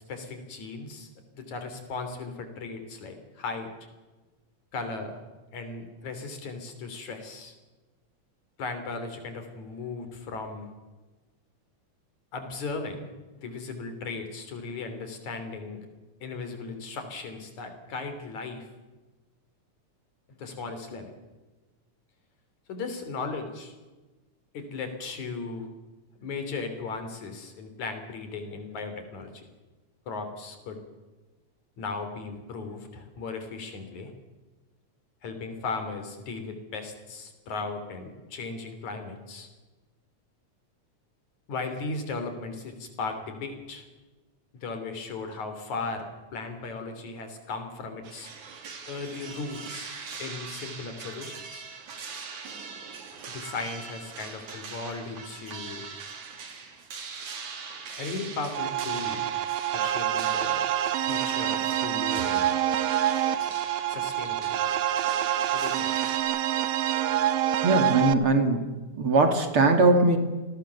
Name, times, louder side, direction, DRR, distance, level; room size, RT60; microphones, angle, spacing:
voice 1, 0.1-3.7 4.7-5.2 5.5-7.5 8.6-10.7 12.3-13.1 13.4-15.8 16.2-18.7 20.4-21.1 22.7-23.7 24.5-25.7 26.2-29.5 30.1-30.8 31.8-34.1 35.2-39.5 41.5-43.8 44.5-48.3 48.9-51.7 53.3-55.9 58.0-59.3 59.7-60.6 61.0-62.5 63.9-64.6 65.5-65.9, left 4 dB, 75° left, 7 dB, 4.7 m, -37 dB
sound 1, 48.0-66.2, right 5 dB, 85° right, 4.2 m, -41 dB
sound 2, 58.5-68.1, right 11 dB, 65° right, 1.8 m, -27 dB
voice 2, 67.6-68.6 68.9-70.2, right 3 dB, 50° right, 6 dB, 3.1 m, -20 dB
28.5 x 19.5 x 7.1 m, 1.2 s
omnidirectional pair, 3.3 m